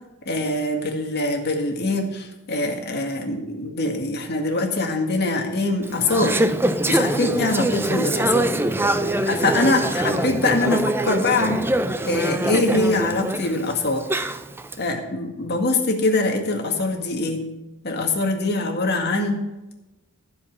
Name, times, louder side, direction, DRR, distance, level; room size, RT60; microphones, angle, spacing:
voice 1, 0.3-6.4 6.9-8.5 9.2-11.7 12.0-14.0 14.8-17.4 17.8-19.4, left 2 dB, 45° left, 3 dB, 1.9 m, -23 dB
Conversation / Chatter, 5.8-14.8, right 1 dB, 10° right, 0.5 m, -24 dB
15.5 x 5.2 x 7.3 m, 1.0 s
head